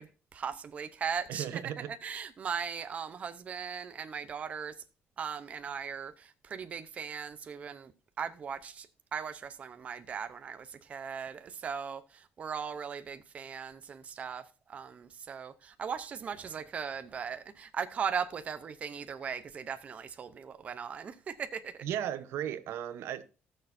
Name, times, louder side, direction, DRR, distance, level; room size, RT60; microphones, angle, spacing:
voice 1, 0.0-1.6 1.9-4.7 5.2-7.9 8.2-8.9 9.1-14.4 14.7-21.8, right 7 dB, 35° right, 0.7 m, -38 dB
voice 2, 1.3-1.9 21.8-23.2, right 10 dB, 90° right, 0.9 m, -35 dB
18.5 x 6.5 x 2.6 m
cardioid pair, 180°, 4 cm